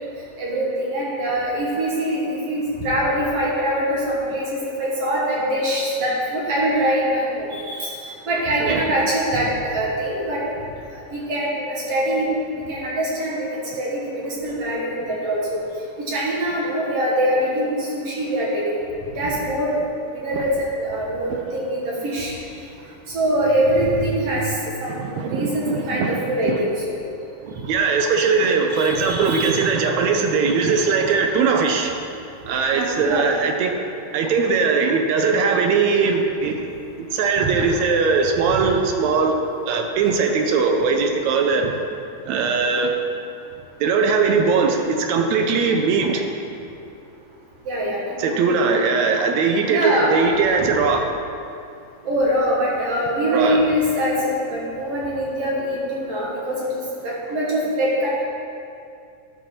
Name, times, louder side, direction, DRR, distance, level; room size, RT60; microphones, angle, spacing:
voice 1, 0.4-7.9 8.3-10.4 11.1-12.3 12.7-15.6 16.0-18.8 19.2-19.8 20.1-22.3 23.1-27.0 28.7-29.6 32.7-33.4 37.4-37.5 38.5-38.6 47.7-48.3 49.7-50.2 52.1-58.2, right 1 dB, 60° right, -5 dB, 2.1 m, -23 dB
voice 2, 24.9-26.6 27.4-32.0 32.5-33.8 34.1-36.7 37.0-41.8 42.2-42.9 43.8-46.4 48.2-51.1 53.3-53.6, right 4 dB, 75° right, 3 dB, 1.9 m, -20 dB
12.0 x 4.6 x 5.8 m, 2.5 s
omnidirectional pair, 3.5 m